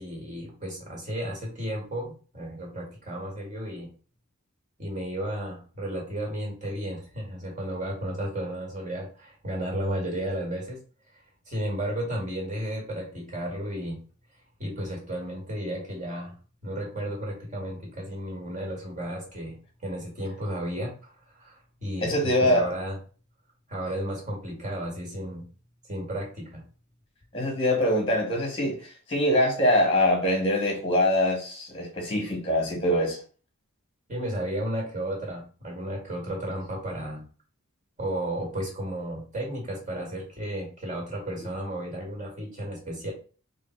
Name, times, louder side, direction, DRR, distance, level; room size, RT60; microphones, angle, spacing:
voice 1, 0.0-3.9 4.8-10.8 11.5-14.0 14.6-16.3 16.6-19.6 19.8-20.9 21.4-22.9 23.7-25.4 25.9-26.6 34.1-37.2 38.0-43.1, right 1 dB, 35° right, 2.0 m, -33 dB
voice 2, 22.0-22.7 27.3-28.8 29.1-33.2, left 1 dB, 25° left, 1.2 m, -23 dB
3.7 x 2.6 x 4.5 m
head